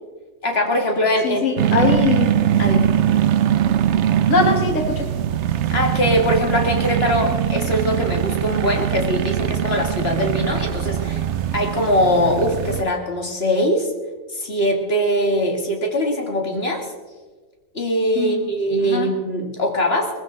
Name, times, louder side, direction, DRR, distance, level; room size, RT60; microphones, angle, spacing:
voice 1, 0.4-1.4 1.8-1.9 2.6-2.9 5.7-11.2 11.5-13.9 14.3-16.8 17.7-20.1, equal, 50° left, 1 dB, 2.2 m, -21 dB
voice 2, 1.2-2.3 4.3-5.1 18.2-18.5 18.8-19.1, left 4 dB, 70° left, 2 dB, 2.1 m, -21 dB
sound 1, 1.6-12.8, right 10 dB, 65° right, 0.9 m, -21 dB
20.5 x 15.0 x 3.9 m, 1.4 s
omnidirectional pair, 1.4 m